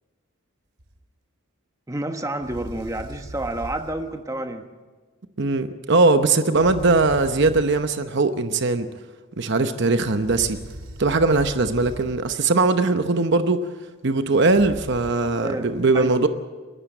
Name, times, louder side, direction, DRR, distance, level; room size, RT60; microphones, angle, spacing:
sound 1, 0.8-1.0 2.4-4.1 6.5-7.9 10.2-12.4 14.5-15.1, right 1 dB, 85° right, 2.9 m, -39 dB
voice 1, 1.9-4.7 15.3-15.7 15.9-16.3, right 1 dB, 15° right, 6 dB, 1.1 m, -29 dB
voice 2, 5.4-8.9 9.4-10.6 11.0-13.6 14.0-16.3, right 3 dB, 55° right, 9 dB, 0.8 m, -20 dB
29.5 x 12.0 x 7.8 m, 1.4 s
head